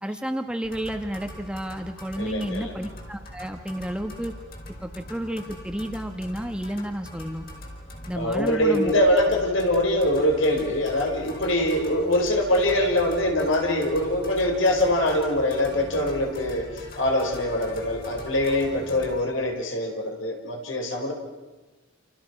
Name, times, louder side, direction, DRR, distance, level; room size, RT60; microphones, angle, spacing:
voice 1, 0.0-4.3 4.8-7.5 8.1-8.9, equal, 5° right, 5 dB, 1.5 m, -31 dB
sound 1, 0.6-19.2, left 1 dB, 45° left, 5.3 m, -41 dB
voice 2, 2.2-2.7 8.1-21.1, left 1 dB, 70° left, 2 dB, 5.0 m, -23 dB
29.5 x 28.5 x 6.2 m, 1.2 s
head